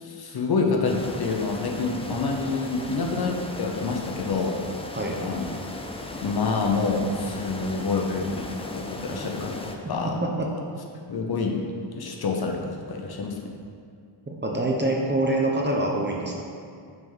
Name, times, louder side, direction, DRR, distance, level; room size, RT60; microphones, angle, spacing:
voice 1, 0.0-4.6 4.9-5.5 6.2-10.2 11.1-11.6 11.9-13.4, left 4 dB, 50° left, 1 dB, 0.7 m, -27 dB
sound 1, 0.8-9.8, left 2 dB, 15° left, 0.4 m, -37 dB
voice 2, 14.3-16.4, right 1 dB, 25° right, -1 dB, 0.7 m, -25 dB
6.0 x 3.5 x 5.5 m, 2.3 s
wide cardioid pair, 125°, 48 cm